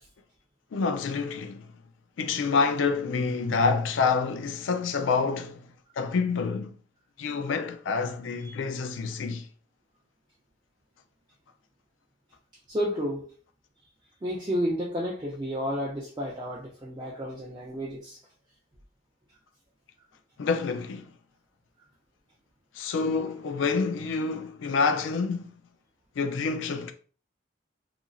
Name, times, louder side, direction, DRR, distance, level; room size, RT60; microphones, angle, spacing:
voice 1, 0.7-1.6 2.2-5.7 6.0-6.7 7.2-9.5 20.4-21.1 22.8-25.5 26.2-26.9, left 4 dB, 90° left, 0.4 m, -27 dB
voice 2, 12.7-13.2 14.2-18.2, equal, 20° right, 0.4 m, -31 dB
2.9 x 2.5 x 2.3 m
head